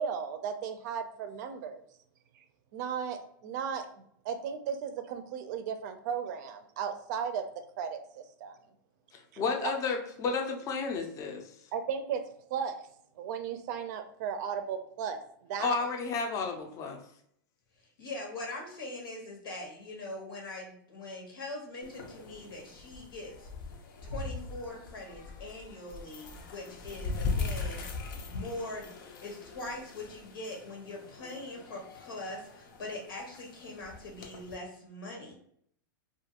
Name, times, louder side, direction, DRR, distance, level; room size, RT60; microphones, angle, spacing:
voice 1, 0.0-1.8 2.7-3.9 4.2-7.5 7.8-8.6 9.3-9.7 11.7-12.2 12.5-12.8 13.2-15.8, right 7 dB, 55° right, 8 dB, 0.4 m, -35 dB
voice 2, 9.4-11.5 15.6-17.0, left 5 dB, 30° left, 3 dB, 0.5 m, -32 dB
voice 3, 17.8-23.5 24.0-27.9 28.2-28.9 29.2-35.3, left 2 dB, 90° left, -1 dB, 1.2 m, -42 dB
sound 1, 21.8-34.5, left 4 dB, 70° left, 0.6 m, -40 dB
2.5 x 2.3 x 2.8 m, 0.66 s
hypercardioid pair, 130°, 11 cm